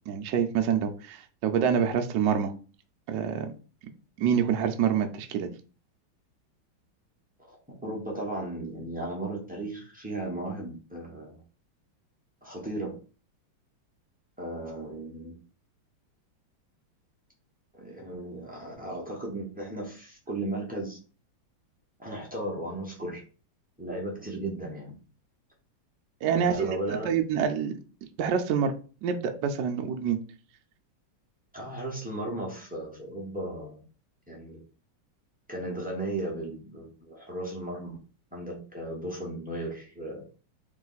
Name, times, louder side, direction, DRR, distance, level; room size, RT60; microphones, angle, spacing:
voice 1, 0.1-2.5 3.1-3.5 4.2-5.5 26.2-27.8 28.2-28.7 29.0-30.2, right 7 dB, 75° right, 6 dB, 1.1 m, -26 dB
voice 2, 7.4-11.4 12.4-13.0 14.4-15.4 17.7-21.0 22.0-23.2 23.8-24.9 26.3-27.1 31.5-33.8 34.3-34.6 35.5-38.0 38.3-40.2, right 1 dB, 10° right, -3 dB, 0.4 m, -35 dB
3.3 x 3.1 x 3.9 m, 0.36 s
omnidirectional pair, 2.2 m